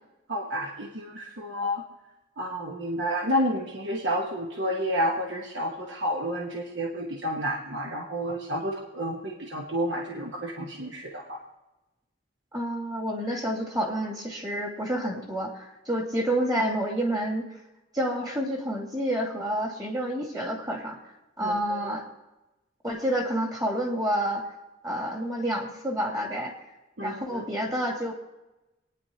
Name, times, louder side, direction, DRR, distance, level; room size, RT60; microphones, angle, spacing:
voice 1, 0.3-1.8 2.4-11.4 21.4-21.9 27.0-27.4, equal, 65° right, 0 dB, 1.2 m, -30 dB
voice 2, 12.5-17.5 17.9-21.0 21.4-22.0 22.8-24.5 24.8-26.5 27.0-28.1, equal, 20° right, 0 dB, 2.5 m, -29 dB
26.0 x 9.7 x 2.8 m, 1.0 s
head